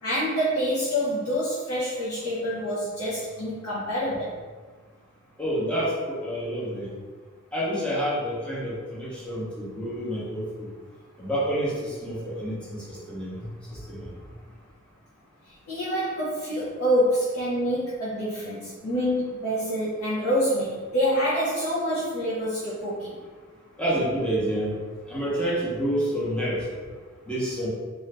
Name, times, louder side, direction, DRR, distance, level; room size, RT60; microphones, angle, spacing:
voice 1, 0.0-4.4 15.7-23.2, equal, 75° left, -9 dB, 0.7 m, -26 dB
voice 2, 5.4-6.9 7.5-10.7 11.2-14.1 23.8-24.7 25.1-26.6 27.3-27.7, equal, 5° left, -7 dB, 0.7 m, -28 dB
2.5 x 2.4 x 3.3 m, 1.4 s
head